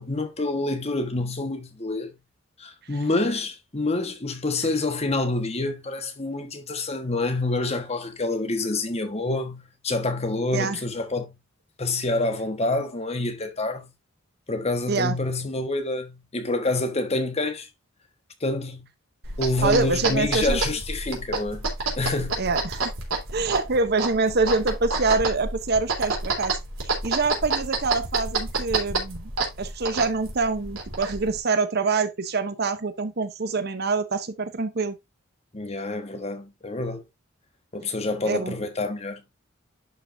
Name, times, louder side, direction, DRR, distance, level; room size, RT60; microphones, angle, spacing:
voice 1, 0.0-2.1 2.6-11.3 11.8-13.9 14.5-17.7 18.4-18.9 19.4-21.7 21.9-22.4 35.5-37.0 37.7-39.2, left 2 dB, 30° left, 1.3 m, -27 dB
sound 1, 19.2-31.4, right 3 dB, 85° right, 3.3 m, -29 dB
voice 2, 19.6-20.6 22.4-22.9 23.3-26.6 27.0-29.3 29.6-35.0 38.3-38.5, right 4 dB, 50° right, 0.8 m, -25 dB
11.0 x 5.0 x 2.6 m
head